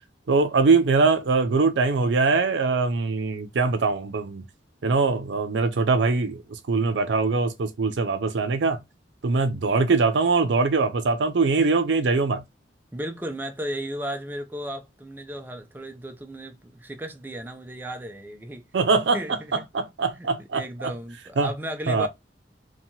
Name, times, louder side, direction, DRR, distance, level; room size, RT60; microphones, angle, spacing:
voice 1, 0.3-4.4 4.8-8.8 9.2-12.4 18.7-19.2 19.7-20.6 21.4-21.5 21.9-22.1, right 4 dB, 75° right, 0.5 m, -22 dB
voice 2, 12.9-18.7 19.1-19.6 20.2-22.1, right 1 dB, 10° right, 0.4 m, -35 dB
2.8 x 2.2 x 2.7 m
head